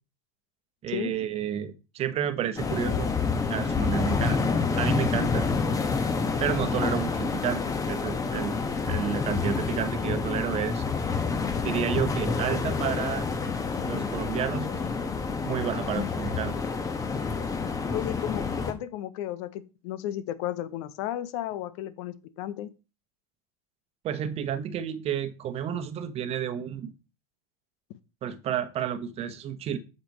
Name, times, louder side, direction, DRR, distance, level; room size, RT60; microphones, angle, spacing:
voice 1, 0.8-3.1 3.5-4.4 4.8-5.5 6.4-8.6 8.9-10.8 11.6-13.3 13.8-14.7 15.4-16.5 24.0-26.9 28.2-29.8, right 9 dB, 40° right, 11 dB, 1.1 m, -31 dB
sound 1, 2.6-18.7, left 4 dB, 20° left, 1.3 m, -28 dB
voice 2, 17.9-22.7, left 12 dB, 60° left, 15 dB, 0.8 m, -34 dB
8.2 x 6.7 x 3.1 m, 0.31 s
hypercardioid pair, 85°, 16 cm